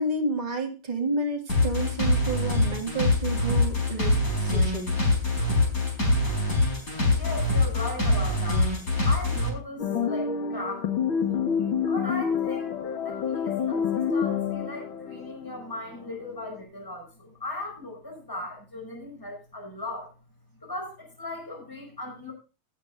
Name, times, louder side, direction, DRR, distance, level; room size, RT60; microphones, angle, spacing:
voice 1, 0.0-4.9, right 2 dB, 20° right, 0 dB, 2.2 m, -30 dB
sound 1, 1.5-9.5, left 2 dB, 40° left, 5.3 m, -24 dB
voice 2, 6.7-8.7 9.0-10.9 11.9-20.1 20.6-22.3, left 2 dB, 10° left, 0 dB, 4.8 m, -38 dB
sound 2, 9.8-16.2, left 7 dB, 70° left, 2.3 m, -28 dB
18.0 x 9.4 x 2.6 m, 0.33 s
omnidirectional pair, 2.3 m